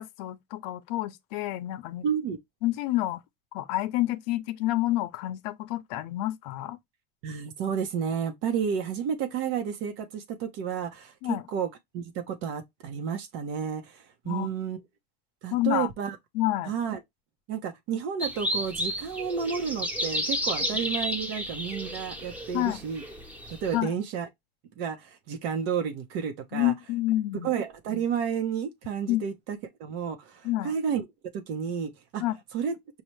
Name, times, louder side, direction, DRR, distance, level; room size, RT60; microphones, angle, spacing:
voice 1, 0.0-2.0 2.6-3.2 3.5-6.8 11.2-11.4 14.2-14.5 15.5-15.9 16.3-16.7 22.5-22.8 23.7-24.0 26.5-27.5 29.1-29.2 30.4-30.7 32.2-32.4, left 16 dB, 90° left, 0.6 m, -28 dB
voice 2, 2.0-2.4 7.2-11.7 11.9-14.8 15.4-16.2 16.6-17.0 17.5-23.0 23.6-24.3 24.8-26.7 27.4-31.0 31.3-32.2 32.5-33.0, right 7 dB, 75° right, 0.9 m, -31 dB
sound 1, 18.2-23.8, equal, 5° right, 0.9 m, -32 dB
5.6 x 2.3 x 3.1 m
cardioid pair, 140°, 20 cm